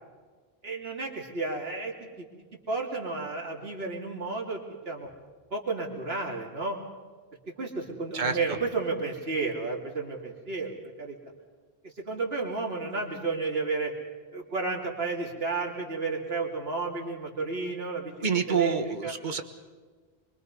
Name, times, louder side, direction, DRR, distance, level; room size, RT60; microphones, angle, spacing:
voice 1, 0.6-2.2 2.7-5.1 5.5-6.8 7.6-11.1 12.0-13.9 14.3-18.1 18.5-19.1, right 3 dB, 70° right, -1 dB, 3.2 m, -32 dB
voice 2, 18.2-19.4, right 6 dB, 50° right, 7 dB, 1.5 m, -27 dB
25.0 x 24.0 x 5.4 m, 1.4 s
omnidirectional pair, 1.1 m